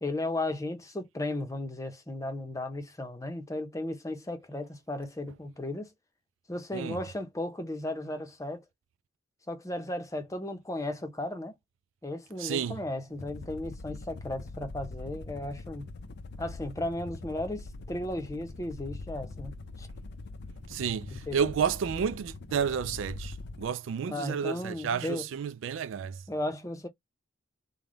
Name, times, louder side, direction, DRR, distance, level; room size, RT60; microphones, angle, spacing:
voice 1, 0.0-5.9 6.5-8.6 9.5-11.5 12.0-15.9 16.4-19.9 20.8-21.5 24.1-25.3 26.3-26.9, left 1 dB, 15° left, 0.8 m, -35 dB
voice 2, 12.4-12.8 20.7-26.2, right 7 dB, 70° right, 0.3 m, -31 dB
sound 1, 13.1-23.7, left 3 dB, 60° left, 0.6 m, -43 dB
3.4 x 2.2 x 3.8 m
head